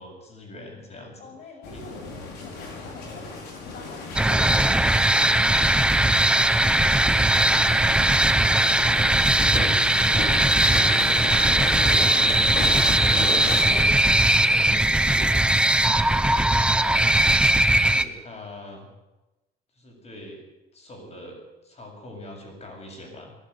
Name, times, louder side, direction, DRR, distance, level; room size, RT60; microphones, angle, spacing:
voice 1, 0.0-1.3 1.7-1.8 3.7-3.9 7.4-8.0 12.4-15.4 16.0-17.2 17.8-18.9 19.7-20.5 20.7-23.4, left 2 dB, 40° left, 3 dB, 7.6 m, -41 dB
voice 2, 1.2-5.0, left 3 dB, 60° left, 2 dB, 7.8 m, -46 dB
sound 1, 1.6-13.8, left 3 dB, 80° left, 5.7 m, -34 dB
sound 2, 4.2-18.0, right 1 dB, 5° right, 0.9 m, -19 dB
21.0 x 12.5 x 9.9 m, 1.0 s
cardioid pair, 110°, 17 cm